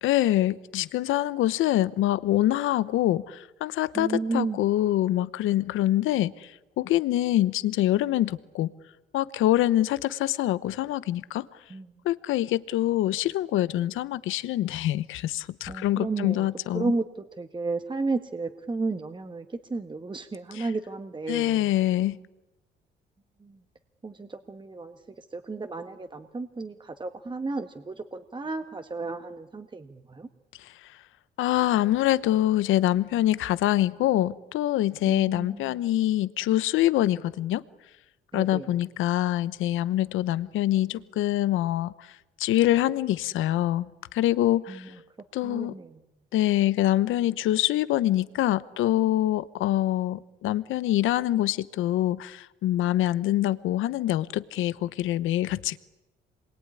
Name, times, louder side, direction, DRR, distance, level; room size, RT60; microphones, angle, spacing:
voice 1, 0.0-8.7 9.1-11.5 12.0-16.9 20.5-20.7 21.3-22.2 30.6-30.9 31.4-37.6 38.3-42.1 42.4-44.9 45.3-45.7 46.3-55.8, left 14 dB, 85° left, 0.9 m, -25 dB
voice 2, 3.9-4.6 11.7-12.0 15.7-16.5 16.7-21.7 23.4-23.6 24.0-30.3 35.1-35.7 38.3-38.7 44.7-44.9 45.4-46.0, right 3 dB, 25° right, 1.5 m, -33 dB
27.0 x 22.0 x 9.8 m
cardioid pair, 90°, 20 cm